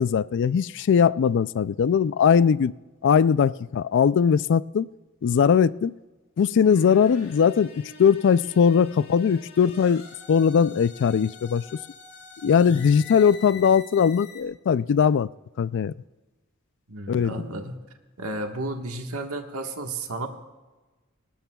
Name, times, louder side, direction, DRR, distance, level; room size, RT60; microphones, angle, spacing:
voice 1, 0.0-2.7 3.0-4.9 5.2-5.9 6.4-7.7 8.0-11.6 12.4-15.3 15.6-15.9 17.1-17.3, left 7 dB, 60° left, 18 dB, 0.3 m, -20 dB
sound 1, 6.6-14.4, left 4 dB, 80° left, 4.3 m, -44 dB
voice 2, 16.9-17.8 18.2-20.3, right 2 dB, 85° right, 4 dB, 1.5 m, -33 dB
22.0 x 19.0 x 2.3 m, 1.2 s
head